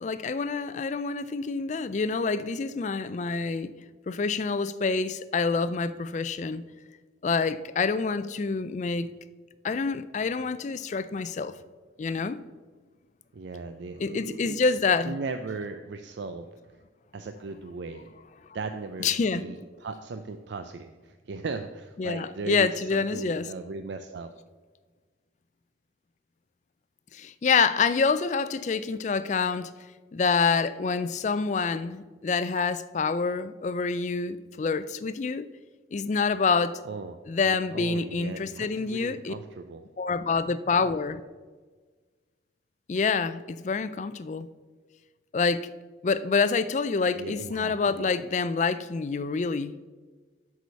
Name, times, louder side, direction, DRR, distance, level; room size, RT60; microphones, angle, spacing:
voice 1, 0.0-3.7 4.1-6.6 7.2-9.1 9.6-11.5 12.0-12.4 14.0-15.1 19.0-19.4 22.0-23.5 27.1-29.7 30.1-35.5 35.9-36.8 37.3-39.3 40.0-41.2 42.9-44.5 45.3-45.7 46.0-49.7, left 4 dB, 40° left, 0.3 m, -27 dB
voice 2, 13.3-14.6 15.0-16.5 17.1-18.1 18.5-24.3 36.8-39.8 47.1-48.1, right 4 dB, 65° right, 0.4 m, -38 dB
8.2 x 4.8 x 6.8 m
head